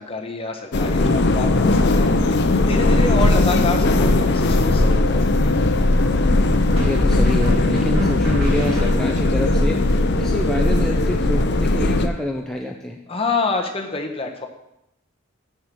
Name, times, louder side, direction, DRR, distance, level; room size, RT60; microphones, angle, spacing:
voice 1, 0.0-5.6 13.1-14.5, left 3 dB, 30° left, 3 dB, 1.1 m, -27 dB
sound 1, 0.7-12.1, left 2 dB, 55° left, 0.7 m, -18 dB
voice 2, 6.7-9.8 10.2-13.0, left 1 dB, 5° left, 1 dB, 0.5 m, -27 dB
sound 2, 6.8-9.4, left 1 dB, 85° right, 4.3 m, -31 dB
7.4 x 6.8 x 6.3 m, 0.85 s
head